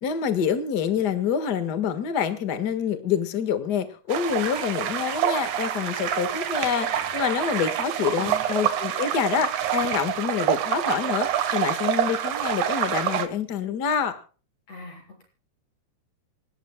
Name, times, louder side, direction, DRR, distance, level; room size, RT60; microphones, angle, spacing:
voice 1, 0.0-14.2, left 7 dB, 85° left, 9 dB, 0.9 m, -27 dB
sound 1, 4.1-13.3, right 10 dB, 60° right, 2.4 m, -27 dB
voice 2, 8.2-8.6 14.7-15.2, equal, 40° left, 2 dB, 7.5 m, -42 dB
28.0 x 13.0 x 2.3 m, 0.38 s
omnidirectional pair, 4.6 m